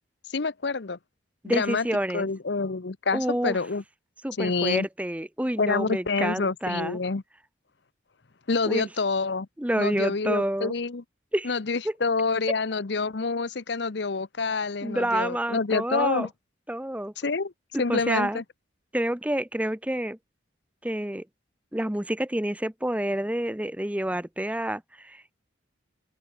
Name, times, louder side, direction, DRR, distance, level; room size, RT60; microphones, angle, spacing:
voice 1, 0.3-1.0 1.5-1.9 2.1-3.8 4.4-4.9 5.6-7.2 8.5-9.5 9.7-11.0 11.4-16.3 17.2-17.5 17.8-18.4, left 4 dB, 65° left, 0.8 m, -27 dB
voice 2, 1.4-2.3 3.1-3.6 4.2-7.0 8.7-8.9 9.6-10.7 11.3-11.5 11.8-11.9 14.8-16.3 16.7-17.1 17.7-18.4 18.9-20.2 20.8-21.2 21.7-25.3, right 1 dB, 5° right, 0.7 m, -28 dB
open air
head